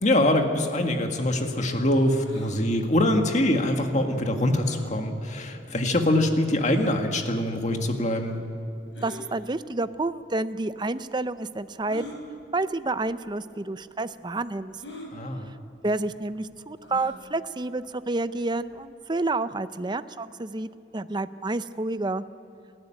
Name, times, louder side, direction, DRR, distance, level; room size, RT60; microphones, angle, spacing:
voice 1, 0.0-8.4 15.1-15.5, left 1 dB, 40° left, 4 dB, 1.9 m, -24 dB
sound 1, 2.2-2.5 4.6-4.9 5.7-5.8 6.6-6.9 8.9-9.3 10.3-10.4 11.9-12.2 13.1-13.3 13.5-13.6 14.8-15.1 16.8-17.2, left 1 dB, 80° left, 4.5 m, -41 dB
voice 2, 9.0-12.2 12.5-14.8 15.8-22.2, right 2 dB, 25° right, 13 dB, 0.6 m, -29 dB
28.0 x 12.0 x 9.1 m, 2.8 s
head